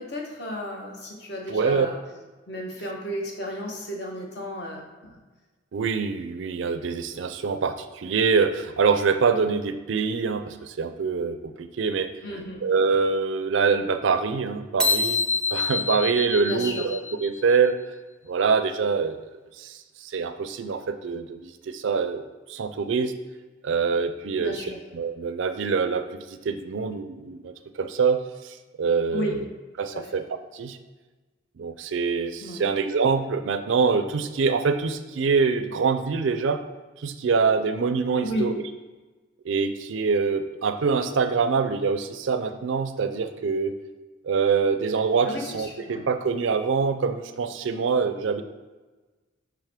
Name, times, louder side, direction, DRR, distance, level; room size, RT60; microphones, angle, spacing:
voice 1, 0.0-2.0 2.5-5.2 12.2-12.6 16.4-16.9 24.4-24.8 29.1-29.4 29.9-30.1 32.4-32.6 38.2-38.5 45.2-46.1, equal, 55° left, -1 dB, 1.1 m, -33 dB
voice 2, 1.5-1.9 5.7-12.1 12.6-15.2 15.5-17.7 18.3-19.2 19.6-22.2 22.5-23.1 23.6-24.6 24.9-28.2 28.4-29.4 29.8-30.2 30.5-30.8 31.6-36.6 37.0-38.6 39.4-43.7 44.2-48.4, right 5 dB, 70° right, 10 dB, 0.4 m, -25 dB
sound 1, 14.8-17.4, left 4 dB, 5° left, 0.5 m, -26 dB
5.6 x 5.1 x 3.5 m, 1.2 s
head